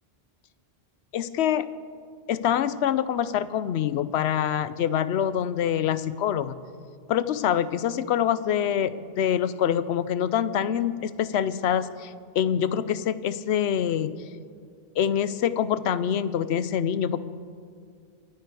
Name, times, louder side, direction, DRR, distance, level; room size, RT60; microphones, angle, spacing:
voice 1, 1.1-1.7 2.3-6.6 7.1-14.2 15.0-17.2, left 9 dB, 85° left, 15 dB, 0.9 m, -25 dB
25.0 x 9.4 x 4.7 m, 2.1 s
omnidirectional pair, 1.1 m